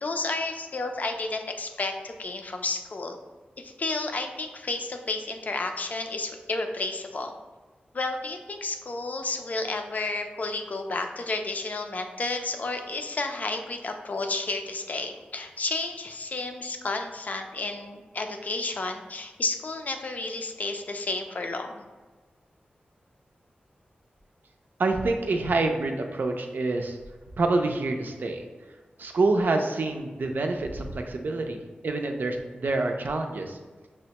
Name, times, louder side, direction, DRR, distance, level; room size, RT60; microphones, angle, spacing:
voice 1, 0.0-3.2 3.6-7.3 7.9-21.8, left 3 dB, 50° left, 5 dB, 0.4 m, -31 dB
voice 2, 24.8-27.0 27.4-28.4 29.0-33.6, right 3 dB, 65° right, 4 dB, 0.4 m, -27 dB
6.0 x 2.1 x 2.8 m, 1.3 s
wide cardioid pair, 95°, 3 cm